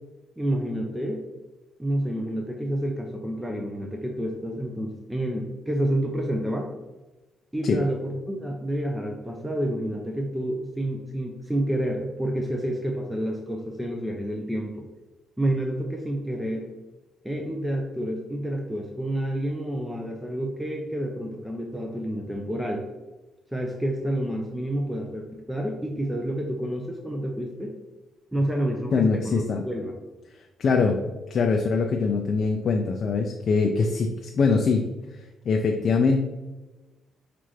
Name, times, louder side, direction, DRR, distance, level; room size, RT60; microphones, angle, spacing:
voice 1, 0.4-1.2 1.8-6.7 7.5-14.8 15.4-16.7 17.2-22.8 23.5-27.7 28.3-30.0, right 1 dB, 5° right, 1 dB, 0.6 m, -29 dB
voice 2, 28.9-29.6 30.6-31.0 31.3-34.9 35.5-36.2, left 4 dB, 55° left, 3 dB, 0.4 m, -23 dB
5.6 x 2.5 x 3.2 m, 1.1 s
cardioid pair, 85°, 0 cm